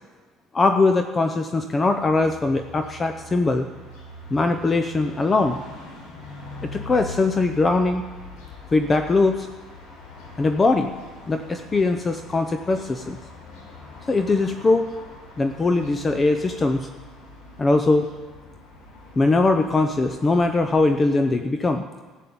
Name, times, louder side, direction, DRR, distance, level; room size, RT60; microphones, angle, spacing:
voice 1, 0.5-3.7 4.3-5.6 6.6-8.0 8.7-9.5 10.4-11.0 11.3-13.2 14.1-14.9 15.4-16.9 17.6-18.1 19.2-21.9, left 3 dB, 20° left, 7 dB, 0.8 m, -21 dB
sound 1, 1.9-21.0, left 2 dB, 85° left, 4.7 m, -42 dB
13.5 x 7.5 x 8.6 m, 1.3 s
cardioid pair, 120°, 0 cm